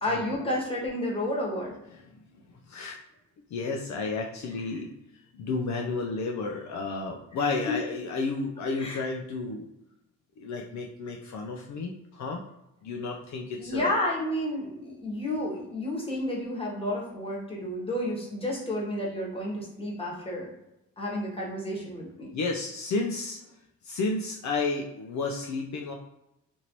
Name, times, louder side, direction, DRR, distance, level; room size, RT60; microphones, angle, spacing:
voice 1, 0.0-1.8 7.7-7.8 8.8-9.0 13.6-20.5 21.0-22.3, left 1 dB, 15° left, -3 dB, 1.2 m, -31 dB
voice 2, 2.7-3.0 3.5-4.9 5.3-9.6 10.4-12.4 12.8-13.9 22.3-23.4 23.8-25.9, left 3 dB, 55° left, 1 dB, 0.5 m, -32 dB
2.8 x 2.6 x 2.9 m, 0.86 s
cardioid pair, 75°, 34 cm